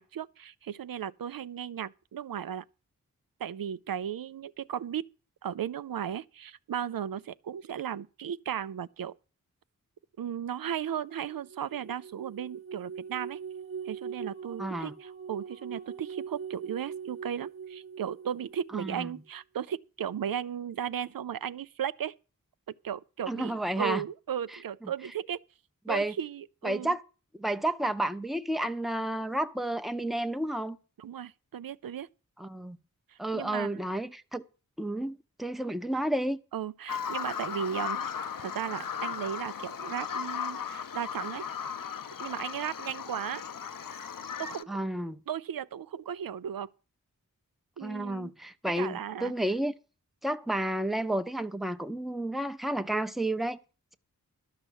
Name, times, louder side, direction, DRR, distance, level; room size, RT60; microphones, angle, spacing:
voice 1, 0.0-2.6 3.4-5.1 5.4-9.2 10.2-13.4 13.9-22.1 22.8-25.4 25.9-26.9 31.0-32.1 33.1-33.7 36.5-38.1 38.4-41.4 42.2-43.4 44.4-44.8 45.3-46.7 47.8-48.3 48.8-49.3, right 9 dB, 85° right, 0.5 m, -36 dB
sound 1, 11.2-19.1, right 6 dB, 40° right, 1.0 m, -42 dB
voice 2, 14.6-14.9 18.7-19.2 23.3-24.0 24.5-24.9 25.9-26.1 26.6-27.0 27.3-30.8 32.4-32.8 33.2-34.4 34.8-36.4 44.7-45.2 47.8-49.7 50.2-53.6, right 1 dB, ahead, 0.7 m, -31 dB
Bird vocalization bird call bird song, 36.9-44.6, left 7 dB, 70° left, 0.6 m, -36 dB
12.5 x 5.7 x 8.1 m
wide cardioid pair, 75°, 34 cm